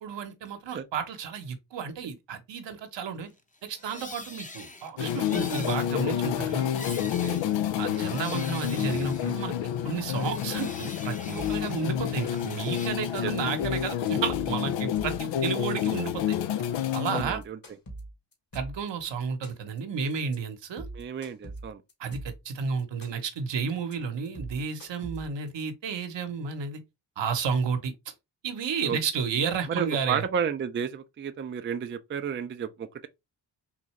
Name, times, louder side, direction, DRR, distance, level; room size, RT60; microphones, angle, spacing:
voice 1, 0.0-3.3 3.6-6.7 7.8-9.5 9.8-16.4 16.9-17.4 18.5-20.9 22.0-26.8 27.2-27.9 28.4-30.2, right 6 dB, 70° right, 0.9 m, -32 dB
sound 1, 3.5-9.7 10.0-12.9, left 2 dB, 15° left, 0.7 m, -44 dB
sound 2, 5.0-17.2, left 10 dB, 80° left, 0.5 m, -29 dB
voice 2, 7.0-7.4 13.2-13.3 17.1-17.6 20.9-21.8 28.8-29.0 29.7-33.1, right 7 dB, 30° right, 0.4 m, -32 dB
sound 3, 11.4-11.7 12.0-12.6 12.9-13.2 13.5-15.3 15.6-16.2 16.5-16.8 17.1-18.9 19.2-19.8 20.1-20.4 20.7-22.5 22.8-23.4 23.7-23.9 24.2-25.5, right 2 dB, 50° left, 1.6 m, -42 dB
3.7 x 2.7 x 3.1 m
cardioid pair, 60°, 45 cm